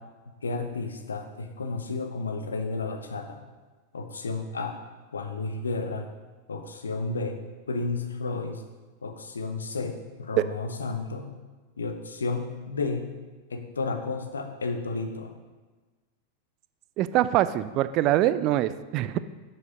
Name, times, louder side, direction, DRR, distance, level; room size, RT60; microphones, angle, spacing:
voice 1, 0.4-3.4 3.9-4.8 5.1-6.1 6.5-7.4 7.7-8.6 9.0-11.3 11.8-13.1 13.5-15.3, left 3 dB, 70° left, 6 dB, 0.8 m, -32 dB
voice 2, 17.0-19.2, right 13 dB, 40° right, 14 dB, 0.4 m, -24 dB
7.1 x 6.6 x 5.1 m, 1.3 s
figure-of-eight pair, 90°, 0 cm